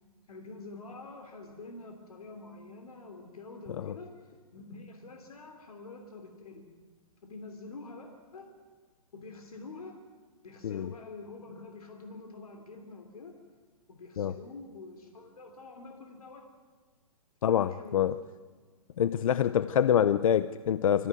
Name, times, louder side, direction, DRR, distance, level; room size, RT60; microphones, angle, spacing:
voice 1, 0.3-6.7 7.2-8.5 9.1-10.0 10.4-13.3 13.9-16.5 17.5-18.1, left 3 dB, 85° left, 4 dB, 3.1 m, -47 dB
voice 2, 17.4-18.2 19.0-21.1, left 9 dB, 65° left, 14 dB, 0.7 m, -26 dB
25.5 x 14.5 x 9.4 m, 1.5 s
hypercardioid pair, 140°, 19 cm